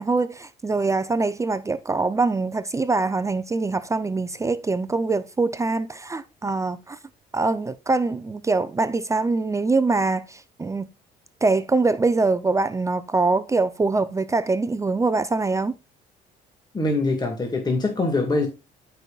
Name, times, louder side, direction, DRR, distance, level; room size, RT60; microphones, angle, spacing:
voice 1, 0.0-7.0 7.3-10.9 11.4-15.7, right 3 dB, 20° right, 0.6 m, -23 dB
voice 2, 16.7-18.5, left 2 dB, 25° left, 1.9 m, -23 dB
13.5 x 5.5 x 2.4 m
cardioid pair, 110°, 17 cm